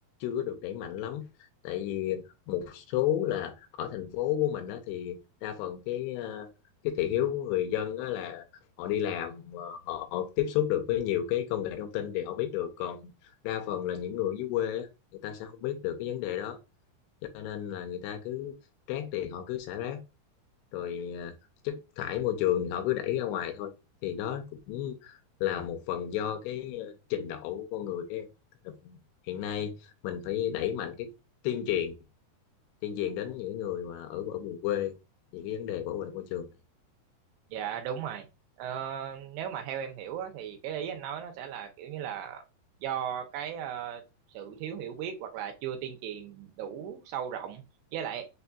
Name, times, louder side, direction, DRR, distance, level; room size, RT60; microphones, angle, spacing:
voice 1, 0.2-1.3 1.6-6.5 6.8-8.5 8.8-13.1 13.4-14.9 15.2-16.6 17.3-18.6 18.9-20.0 20.7-21.3 21.6-23.7 24.0-28.3 28.8-29.0 29.3-29.7 30.0-31.1 31.4-32.0 32.8-35.0 35.3-36.5, left 11 dB, 80° left, 2.7 m, -32 dB
voice 2, 37.5-38.3 38.6-42.4 42.8-44.0 44.3-47.6 47.9-48.2, right 9 dB, 80° right, 2.9 m, -36 dB
6.4 x 2.6 x 2.3 m
omnidirectional pair, 4.8 m